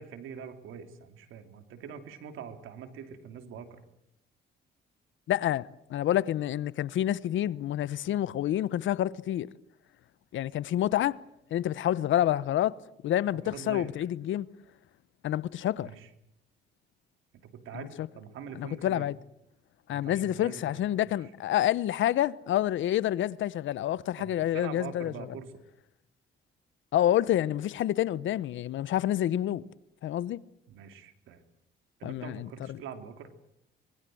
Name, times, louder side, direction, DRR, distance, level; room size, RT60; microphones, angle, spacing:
voice 1, 0.0-3.8 13.4-13.9 15.8-16.1 17.4-19.1 19.9-21.2 24.2-25.6 30.7-31.4 32.0-33.3, right 7 dB, 85° right, 3.0 m, -44 dB
voice 2, 5.3-9.5 10.3-11.2 11.5-12.8 13.0-14.5 15.2-15.9 17.7-18.1 18.5-19.2 19.9-25.1 26.9-29.6 30.0-30.4 32.0-32.8, left 12 dB, 75° left, 0.9 m, -28 dB
25.0 x 21.0 x 7.8 m
cardioid pair, 90°, 20 cm